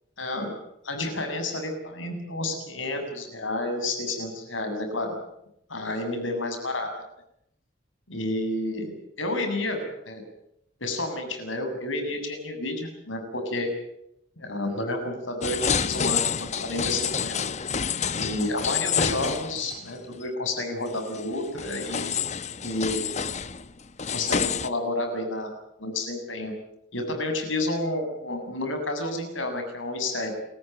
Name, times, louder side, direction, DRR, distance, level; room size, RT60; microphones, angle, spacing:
voice 1, 0.2-0.6 0.8-5.2 5.7-6.9 8.1-8.9 9.2-10.2 10.8-13.7 14.4-17.4 18.1-22.1 22.6-23.2 24.1-25.5 25.8-26.5 26.9-30.3, left 2 dB, 90° left, 6 dB, 7.3 m, -30 dB
sound 1, 15.4-19.9 20.2-20.3 21.0-24.7, left 7 dB, 35° left, 0.9 m, -28 dB
29.0 x 15.0 x 9.1 m, 0.78 s
head